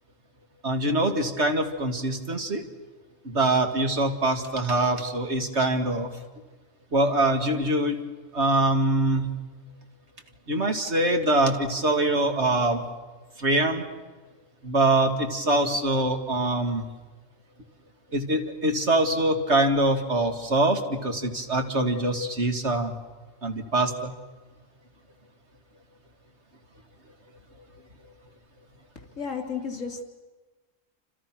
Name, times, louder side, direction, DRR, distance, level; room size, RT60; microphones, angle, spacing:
voice 1, 0.6-2.6 3.2-6.1 6.9-8.0 8.3-9.3 10.5-12.8 13.4-13.8 14.6-16.9 18.1-23.0 23.4-24.1 27.5-27.6 28.0-28.1, right 2 dB, 55° right, 5 dB, 2.4 m, -24 dB
voice 2, 29.2-30.0, left 6 dB, 70° left, 5 dB, 3.7 m, -32 dB
29.0 x 27.0 x 6.1 m, 1.3 s
omnidirectional pair, 1.4 m